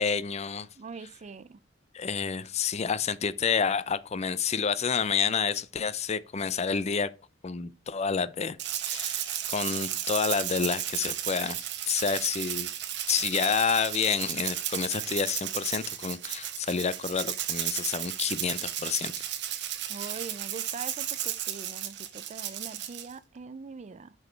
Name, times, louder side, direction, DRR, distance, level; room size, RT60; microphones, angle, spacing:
voice 1, 0.0-0.7 1.9-7.1 7.4-8.6 8.8-11.6 11.9-12.7 13.1-19.1, left 6 dB, 35° left, 0.5 m, -29 dB
voice 2, 0.8-1.6 19.9-24.1, right 4 dB, 35° right, 0.4 m, -42 dB
Rattle (instrument), 8.6-23.1, right 11 dB, 65° right, 1.0 m, -34 dB
6.1 x 5.3 x 4.4 m
head